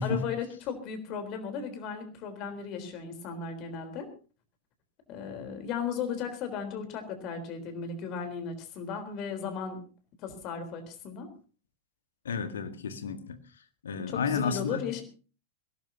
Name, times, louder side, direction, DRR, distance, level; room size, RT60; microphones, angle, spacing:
voice 1, 0.0-4.1 5.1-9.8 10.2-11.3 14.0-15.0, left 6 dB, 40° left, 7 dB, 3.8 m, -36 dB
voice 2, 12.2-13.4 13.8-14.8, left 5 dB, 65° left, 10 dB, 1.7 m, -31 dB
22.0 x 17.5 x 2.8 m, 0.36 s
figure-of-eight pair, 90°, 0 cm